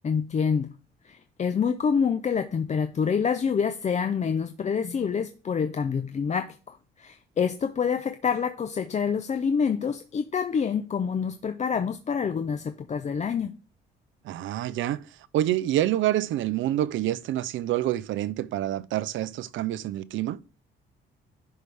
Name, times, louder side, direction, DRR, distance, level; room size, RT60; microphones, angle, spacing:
voice 1, 0.0-0.7 1.0-13.5, left 6 dB, 35° left, 0.6 m, -27 dB
voice 2, 14.2-15.1 15.3-20.4, right 13 dB, 75° right, 0.5 m, -27 dB
11.0 x 4.8 x 3.4 m
cardioid pair, 90°, 20 cm